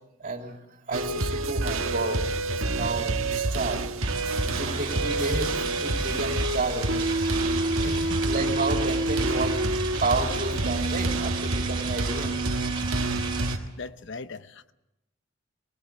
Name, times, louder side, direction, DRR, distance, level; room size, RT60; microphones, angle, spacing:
voice 1, 0.2-0.6 0.9-3.9 4.4-5.5 5.8-7.1 7.8-9.6 10.0-12.4, right 3 dB, 40° right, 3.2 m, -31 dB
sound 1, 0.9-13.6, right 2 dB, 80° right, 1.4 m, -27 dB
sound 2, 4.0-13.6, right 5 dB, 25° right, 3.4 m, -37 dB
voice 2, 7.8-8.2 13.2-13.3 13.8-14.7, left 4 dB, 60° left, 0.8 m, -40 dB
20.0 x 20.0 x 8.1 m
head